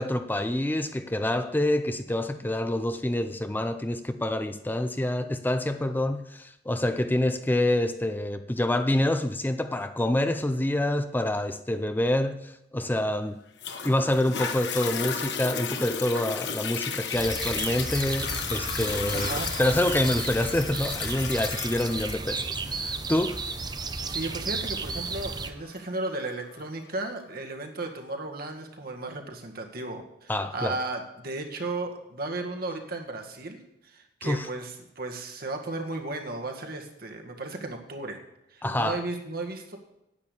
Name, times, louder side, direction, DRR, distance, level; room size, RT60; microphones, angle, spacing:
voice 1, 0.0-13.4 13.8-23.4 30.3-30.8 34.2-34.5 38.6-39.0, left 1 dB, 10° left, 0.5 m, -27 dB
Toilet flush, 13.6-26.6 27.2-27.3, left 7 dB, 70° left, 1.3 m, -34 dB
sound 1, 17.1-25.5, right 4 dB, 25° right, 0.7 m, -33 dB
voice 2, 19.1-19.5 24.0-33.6 33.8-38.2 38.5-39.8, right 2 dB, 60° right, 1.9 m, -35 dB
10.0 x 9.0 x 8.3 m
head